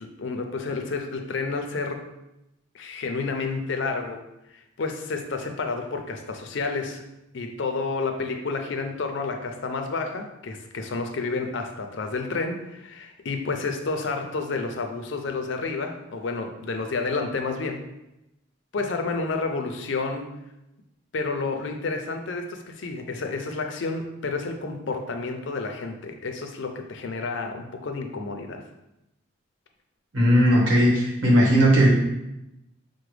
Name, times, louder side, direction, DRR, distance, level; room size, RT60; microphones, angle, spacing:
voice 1, 0.0-2.0 2.7-4.2 4.8-7.0 7.3-17.8 18.7-20.3 21.1-28.6, left 3 dB, 60° left, 4 dB, 0.5 m, -30 dB
voice 2, 30.1-31.9, equal, 70° right, -5 dB, 1.5 m, -17 dB
5.9 x 2.1 x 3.2 m, 0.90 s
head